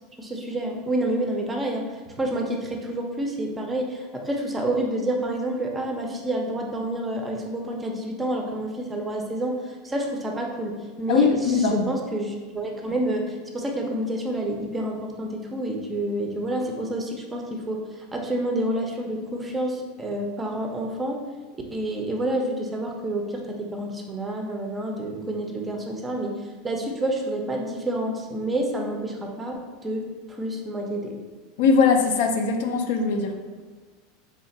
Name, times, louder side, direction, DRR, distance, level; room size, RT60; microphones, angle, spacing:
voice 1, 0.2-1.8 2.2-17.8 18.1-21.2 21.7-26.3 26.6-31.1, right 1 dB, 10° right, 1 dB, 0.5 m, -28 dB
voice 2, 11.1-11.9 31.6-33.3, left 5 dB, 70° left, 5 dB, 0.5 m, -21 dB
3.6 x 2.4 x 4.1 m, 1.5 s
supercardioid pair, 145°, 0 cm